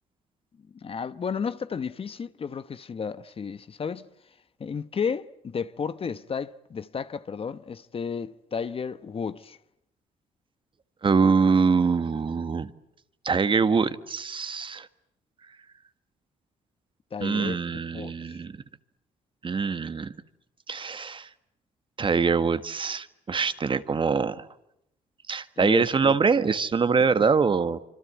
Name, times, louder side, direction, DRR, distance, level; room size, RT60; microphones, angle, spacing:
voice 1, 0.8-4.1 4.6-9.6 17.1-17.6 17.9-18.4 25.6-26.2, left 6 dB, 40° left, 1.1 m, -33 dB
voice 2, 11.0-12.7 13.2-14.9 17.2-18.5 19.4-20.1 20.7-21.3 22.0-24.5 25.3-27.8, right 5 dB, 35° right, 1.6 m, -24 dB
26.5 x 25.0 x 8.4 m
cardioid pair, 80°, 14 cm